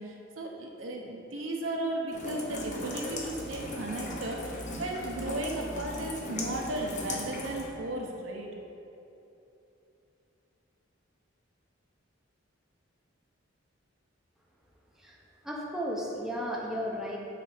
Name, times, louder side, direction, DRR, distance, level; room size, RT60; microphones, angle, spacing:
voice 1, 0.0-8.5, right 1 dB, 75° right, 0 dB, 0.9 m, -35 dB
Rain, 2.1-7.7, left 1 dB, 40° left, 1.0 m, -38 dB
voice 2, 15.4-17.2, equal, ahead, -3 dB, 0.7 m, -34 dB
6.7 x 4.1 x 5.8 m, 2.9 s
head